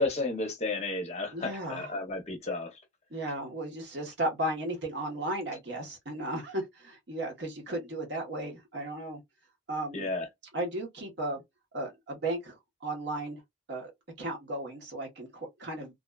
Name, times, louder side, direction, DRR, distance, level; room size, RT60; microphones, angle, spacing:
voice 1, 0.0-2.8 9.9-10.3, left 2 dB, 35° left, 0.6 m, -32 dB
voice 2, 1.3-1.9 3.1-9.2 9.7-10.1 10.5-11.4 11.7-13.4 13.7-13.9 14.2-15.9, right 1 dB, 60° right, 1.0 m, -35 dB
2.5 x 2.2 x 2.2 m
head